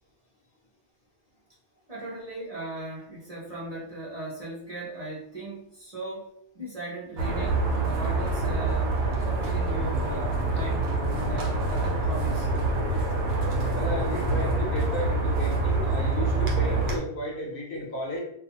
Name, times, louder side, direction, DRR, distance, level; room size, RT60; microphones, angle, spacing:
voice 1, 1.9-9.0 9.2-12.5, right 2 dB, 40° right, -7 dB, 0.7 m, -38 dB
sound 1, 7.2-17.0, right 2 dB, 85° right, 0.9 m, -26 dB
voice 2, 13.7-18.2, left 1 dB, 60° left, -2 dB, 0.9 m, -34 dB
2.4 x 2.4 x 2.8 m, 0.72 s
omnidirectional pair, 1.1 m